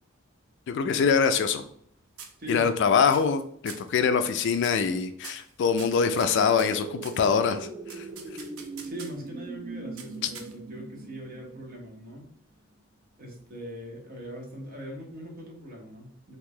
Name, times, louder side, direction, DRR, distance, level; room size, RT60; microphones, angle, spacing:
voice 1, 0.7-1.6 2.5-8.1, left 6 dB, 55° left, 9 dB, 0.3 m, -24 dB
sound 1, 1.2-1.9 2.2-2.8 3.1-3.4 3.7-4.0 4.6-4.9 5.2-7.2 7.9-9.3 10.0-10.8, right 6 dB, 75° right, 0.6 m, -45 dB
voice 2, 2.4-2.7 8.8-12.3 13.2-16.4, equal, 45° right, 0 dB, 1.0 m, -40 dB
sound 2, 6.1-12.2 12.6-12.7, right 3 dB, 25° right, 0.3 m, -41 dB
3.0 x 2.6 x 3.7 m, 0.63 s
head